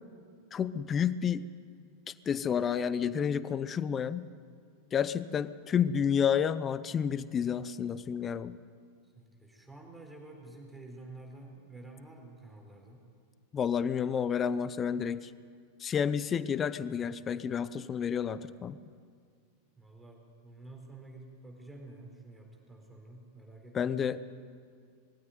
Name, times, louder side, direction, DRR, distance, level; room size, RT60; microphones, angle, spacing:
voice 1, 0.5-1.5 2.3-4.3 4.9-8.6 13.5-15.3 15.8-18.8 23.7-24.3, left 7 dB, 25° left, 15 dB, 0.8 m, -30 dB
voice 2, 9.1-13.1 16.8-17.6 19.8-24.1, right 2 dB, 5° right, 0 dB, 4.3 m, -50 dB
21.5 x 16.0 x 9.4 m, 2.1 s
figure-of-eight pair, 90°, 0 cm